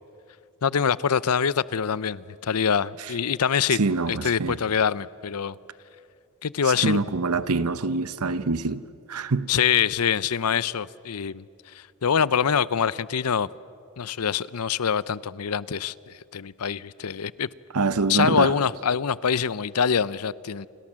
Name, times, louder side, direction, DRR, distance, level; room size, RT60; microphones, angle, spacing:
voice 1, 0.6-3.8 4.1-5.6 6.4-7.0 9.5-13.5 14.0-17.5 18.1-20.7, left 7 dB, 90° left, 0.6 m, -25 dB
voice 2, 3.8-4.6 6.8-9.5 17.7-18.5, right 3 dB, 90° right, 0.9 m, -25 dB
30.0 x 25.5 x 7.5 m
head